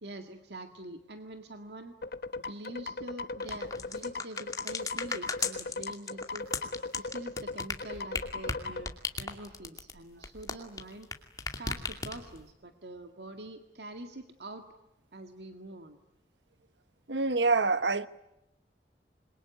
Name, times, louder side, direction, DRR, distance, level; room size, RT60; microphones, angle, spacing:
voice 1, 0.0-1.9 2.5-6.5 7.0-8.9 9.2-11.1 11.6-14.6 15.1-16.0, right 1 dB, 70° right, 1.9 m, -45 dB
sound 1, 2.0-8.9, left 3 dB, 60° left, 1.0 m, -38 dB
sound 2, 3.4-11.1 11.4-12.4, left 4 dB, 20° left, 2.5 m, -35 dB
voice 2, 17.1-18.1, right 3 dB, 85° right, 1.2 m, -26 dB
27.5 x 22.5 x 9.4 m
head